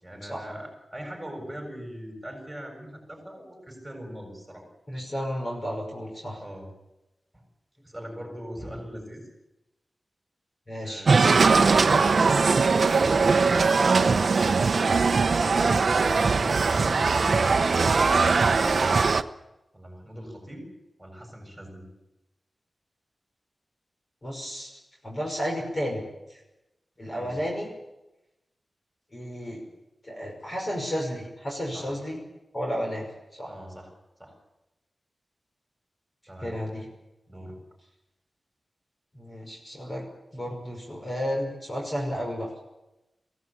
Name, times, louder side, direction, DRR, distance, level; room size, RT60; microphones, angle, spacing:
voice 1, 0.0-4.7 6.4-6.7 7.3-7.4 7.8-9.2 10.8-11.3 15.2-15.9 16.3-16.9 19.7-20.7 21.0-21.9 27.1-27.4 31.7-31.9 33.5-33.9 34.2-34.4 36.3-36.6 37.3-37.6, equal, 5° right, 1 dB, 7.5 m, -41 dB
voice 2, 4.9-6.4 10.7-11.1 16.5-17.8 24.2-26.0 26.3-26.4 27.0-27.7 29.1-29.6 30.0-32.2 32.5-33.1 33.4-33.5 36.4-36.9 39.1-40.0 40.3-42.5, equal, 30° left, 0 dB, 5.7 m, -33 dB
sound 1, 11.1-19.2, right 4 dB, 55° right, 0.9 m, -21 dB
23.0 x 17.0 x 8.7 m, 0.94 s
wide cardioid pair, 135°, 0 cm